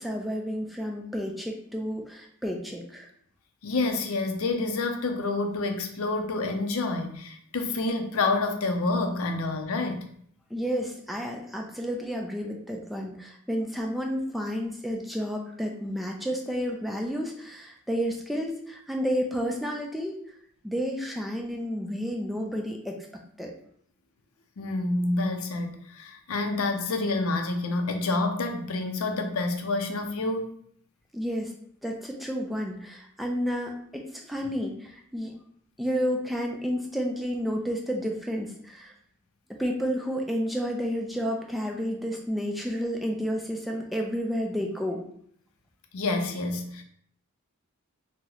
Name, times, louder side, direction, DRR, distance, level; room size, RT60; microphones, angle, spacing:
voice 1, 0.0-3.1 10.5-20.2 20.6-23.5 31.1-31.5 31.8-35.3 35.8-38.9 39.5-45.0, equal, ahead, 0 dB, 0.3 m, -31 dB
voice 2, 3.6-10.1 24.6-30.5 45.9-46.8, left 2 dB, 70° left, 5 dB, 0.5 m, -28 dB
2.8 x 2.1 x 3.8 m, 0.64 s
head